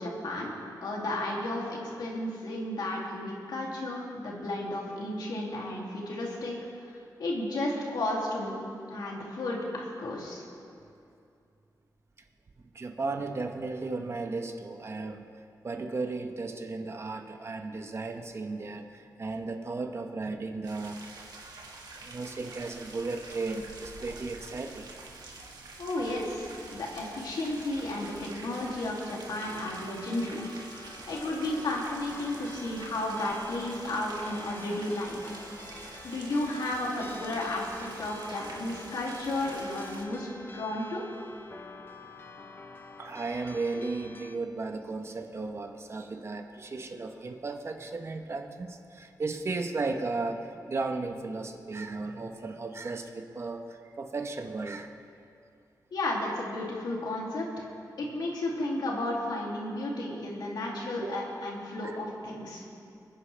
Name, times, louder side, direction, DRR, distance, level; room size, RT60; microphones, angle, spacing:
voice 1, 0.0-8.6 8.9-10.4 25.8-35.3 36.0-41.0 55.9-57.7 58.0-62.6, left 1 dB, 80° left, -2 dB, 2.6 m, -33 dB
voice 2, 12.7-21.0 22.0-24.9 25.3-25.4 43.0-54.9 61.0-61.2 61.8-62.0, right 3 dB, 40° right, 5 dB, 0.9 m, -35 dB
sound 1, 20.6-40.1, right 3 dB, 80° right, 1.8 m, -47 dB
sound 2, 29.4-44.4, left 3 dB, 30° left, 0.7 m, -48 dB
25.0 x 10.0 x 3.3 m, 2.5 s
wide cardioid pair, 115°, 7 cm